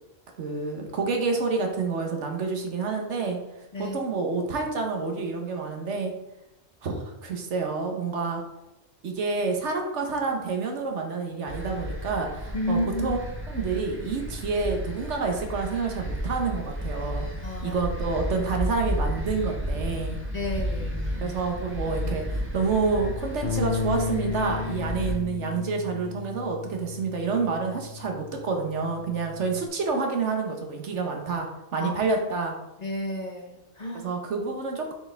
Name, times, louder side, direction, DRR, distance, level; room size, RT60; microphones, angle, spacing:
voice 1, 0.4-3.4 3.8-6.1 6.8-8.4 9.0-13.2 13.5-17.3 17.6-20.2 21.2-32.5 34.0-34.9, right 4 dB, 70° right, 3 dB, 1.3 m, -28 dB
sound 1, 11.5-25.2, equal, 10° right, 0.8 m, -33 dB
voice 2, 12.5-13.1 17.4-17.8 20.3-21.3 31.8-31.9 32.8-34.1, left 1 dB, 40° left, 1 dB, 0.8 m, -31 dB
Bass guitar, 23.4-29.7, left 6 dB, 60° left, 0.4 m, -34 dB
6.5 x 4.8 x 3.4 m, 0.91 s
omnidirectional pair, 1.3 m